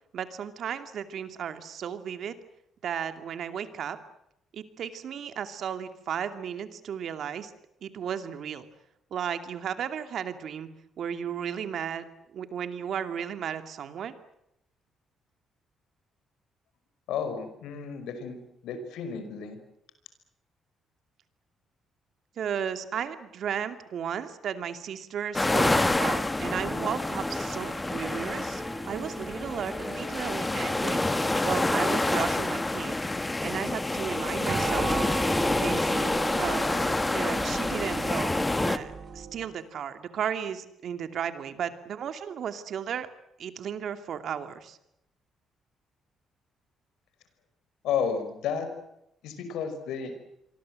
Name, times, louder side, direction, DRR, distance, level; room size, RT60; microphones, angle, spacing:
voice 1, 0.1-2.4 2.8-4.0 4.5-7.5 7.8-8.7 9.1-10.7 11.0-12.0 12.3-14.1 22.4-31.0 31.4-33.0 33.4-34.9 35.6-36.7 37.1-43.1 43.4-44.8, right 8 dB, 65° right, 9 dB, 2.6 m, -34 dB
voice 2, 17.1-18.4 18.6-19.6 47.8-48.7 49.2-50.1, left 7 dB, 85° left, 9 dB, 5.4 m, -32 dB
sound 1, 25.3-38.8, left 2 dB, 15° left, 1.6 m, -28 dB
Guitar, 26.4-32.9, equal, 5° right, 5.8 m, -42 dB
sound 2, 34.4-39.6, right 5 dB, 45° right, 3.7 m, -36 dB
27.5 x 23.5 x 7.8 m, 0.81 s
cardioid pair, 90°, 0 cm